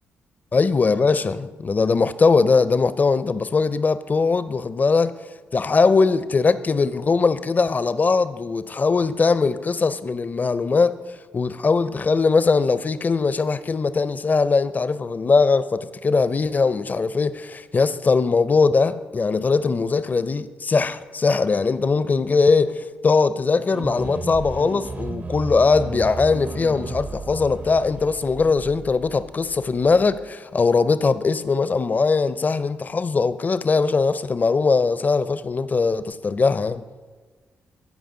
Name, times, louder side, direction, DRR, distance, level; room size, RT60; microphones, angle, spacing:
voice 1, 0.5-5.1 5.5-11.0 11.3-36.8, left 4 dB, 35° left, 0.5 m, -20 dB
sound 1, 23.7-30.3, right 3 dB, 40° right, 0.6 m, -34 dB
14.5 x 5.1 x 3.8 m
hypercardioid pair, 45°, 5 cm